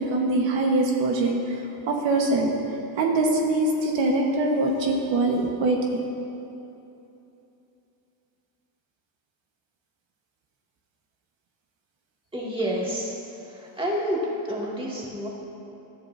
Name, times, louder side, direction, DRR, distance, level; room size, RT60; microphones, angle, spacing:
voice 1, 0.0-2.5 3.0-6.0, right 2 dB, 70° right, 0 dB, 1.5 m, -23 dB
voice 2, 12.3-13.2 13.5-14.2 14.5-15.3, right 1 dB, 10° right, -5 dB, 2.5 m, -29 dB
19.5 x 13.5 x 2.8 m, 2.9 s
cardioid pair, 145°, 47 cm